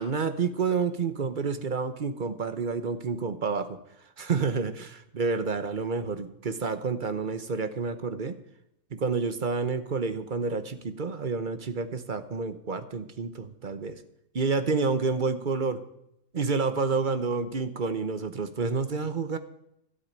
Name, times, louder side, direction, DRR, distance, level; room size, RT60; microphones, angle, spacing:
voice 1, 0.0-3.8 4.2-8.3 8.9-14.0 14.3-15.8 16.3-19.4, right 4 dB, 40° right, 11 dB, 1.0 m, -29 dB
12.5 x 8.5 x 8.9 m, 0.79 s
omnidirectional pair, 1.5 m